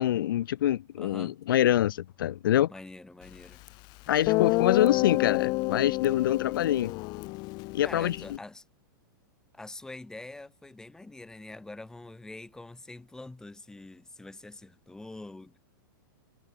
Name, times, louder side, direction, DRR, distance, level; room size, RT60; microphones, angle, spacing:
voice 1, 0.0-2.7 4.1-6.9 7.7-8.2, left 12 dB, 80° left, 0.6 m, -25 dB
voice 2, 1.0-1.4 2.7-3.6 7.6-8.6 9.5-15.6, left 2 dB, 5° left, 2.9 m, -45 dB
Guitar, 3.7-3.8 4.3-8.4, left 24 dB, 40° left, 1.1 m, -28 dB
hypercardioid pair, 140°, 11 cm